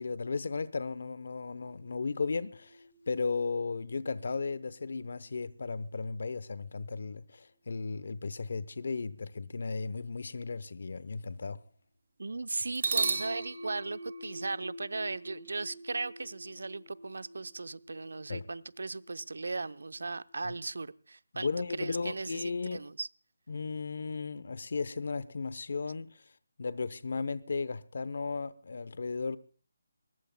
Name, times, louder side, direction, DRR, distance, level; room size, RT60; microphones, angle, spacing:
voice 1, 0.0-2.8 3.1-11.6 18.3-18.5 21.3-22.8 23.5-26.2 26.6-29.4, left 4 dB, 45° left, 0.8 m, -35 dB
sound 1, 1.6-5.2 12.7-20.6, right 3 dB, 45° right, 2.5 m, -40 dB
voice 2, 12.2-21.5 21.8-23.1, right 3 dB, 70° right, 0.7 m, -37 dB
22.0 x 19.5 x 2.2 m
hypercardioid pair, 180°, 0 cm